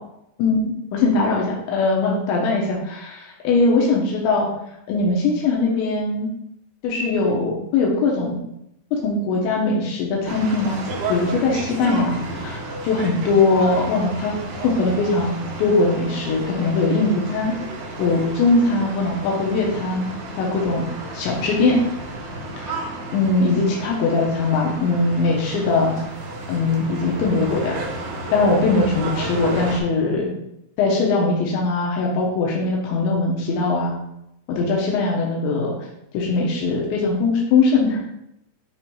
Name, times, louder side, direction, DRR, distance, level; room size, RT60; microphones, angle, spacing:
voice 1, 0.4-4.5 4.9-6.3 6.8-8.4 8.9-10.8 11.1-14.4 14.6-17.5 18.0-20.1 20.4-20.8 21.1-21.8 22.6-26.0 26.5-27.8 28.3-30.3 30.8-34.0 34.5-35.7 36.1-38.0, left 3 dB, 75° left, -2 dB, 3.2 m, -21 dB
sound 1, 10.2-29.8, right 2 dB, 85° right, 1.7 m, -32 dB
7.6 x 3.3 x 4.6 m, 0.82 s
omnidirectional pair, 5.4 m